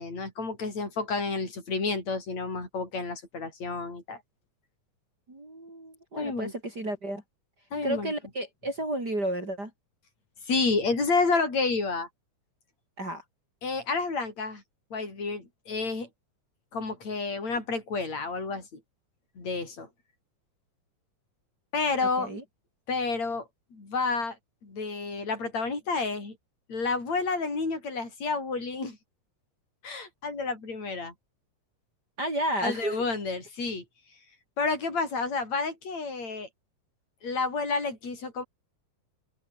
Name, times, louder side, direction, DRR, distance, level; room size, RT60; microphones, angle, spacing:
voice 1, 0.0-4.2 6.2-6.5 7.7-8.1 10.5-12.1 13.6-14.6 14.9-16.1 16.7-18.7 19.4-19.9 21.7-22.3 22.9-24.4 24.6-26.4 26.7-29.0 29.8-31.1 32.6-33.8 34.6-36.5 37.2-38.4, left 4 dB, 55° left, 8.9 m, -30 dB
voice 2, 5.3-7.2 7.8-9.7 13.0-13.2 22.2-22.4 32.2-33.0, right 1 dB, 30° right, 6.6 m, -32 dB
open air
omnidirectional pair, 3.6 m